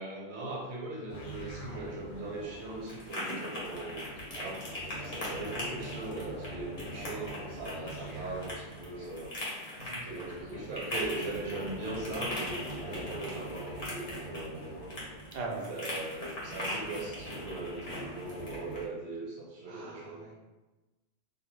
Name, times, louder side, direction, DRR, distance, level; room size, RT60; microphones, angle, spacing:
voice 1, 0.0-4.0 4.4-9.4 10.0-15.0 15.7-20.2, right 2 dB, 80° right, -3 dB, 1.0 m, -40 dB
sound 1, 1.1-18.9, right 1 dB, 90° left, 0.9 m, -45 dB
sound 2, 1.7-18.8, left 1 dB, 45° left, 0.7 m, -41 dB
voice 2, 15.3-16.1 19.7-20.4, right 3 dB, 55° right, -1 dB, 0.4 m, -41 dB
2.2 x 2.0 x 3.1 m, 1.1 s
omnidirectional pair, 1.1 m